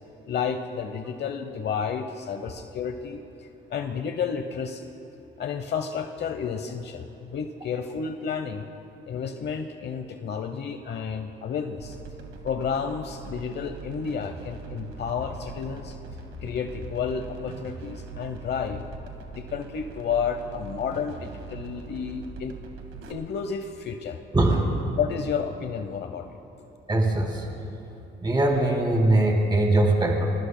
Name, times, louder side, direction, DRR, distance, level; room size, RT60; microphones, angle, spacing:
voice 1, 0.3-4.9 5.4-8.7 9.1-12.0 12.4-16.0 16.4-18.8 19.3-22.5 23.1-24.2 25.0-26.3, left 6 dB, 60° left, 7 dB, 0.8 m, -31 dB
sound 1, 11.8-23.1, right 5 dB, 80° right, 1.8 m, -41 dB
voice 2, 24.3-24.8 26.9-27.5 28.2-30.3, right 2 dB, 20° right, -1 dB, 2.8 m, -21 dB
27.5 x 21.5 x 2.2 m, 2.8 s
cardioid pair, 90°, 20 cm